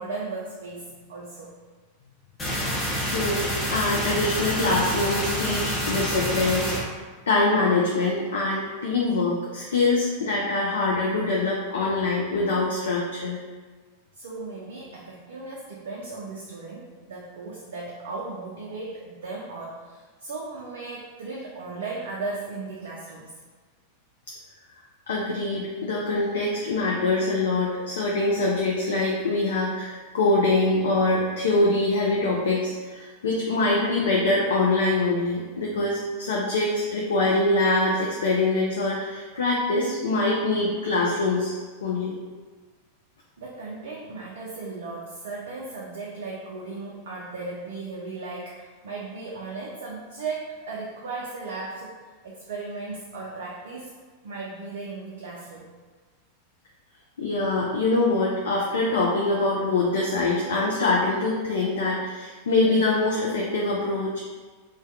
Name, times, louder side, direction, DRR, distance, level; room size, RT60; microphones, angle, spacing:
voice 1, 0.0-1.5 14.1-23.3 43.4-53.9 54.2-55.6, right 3 dB, 60° right, -4 dB, 0.3 m, -36 dB
sound 1, 2.4-6.8, equal, 15° left, 0.7 m, -27 dB
voice 2, 3.0-6.7 7.3-13.4 25.1-42.2 57.2-64.2, left 2 dB, 65° left, -3 dB, 0.3 m, -24 dB
2.2 x 2.1 x 2.6 m, 1.4 s
figure-of-eight pair, 90°, 0 cm